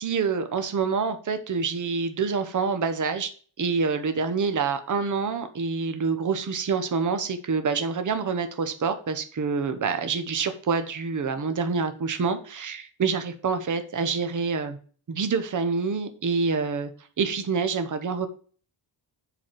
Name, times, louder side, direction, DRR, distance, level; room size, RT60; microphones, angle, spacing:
voice 1, 0.0-3.3 3.6-14.8 15.1-16.9 17.2-18.3, right 5 dB, 40° right, 9 dB, 0.9 m, -27 dB
7.5 x 6.2 x 4.6 m, 0.41 s
wide cardioid pair, 180°, 47 cm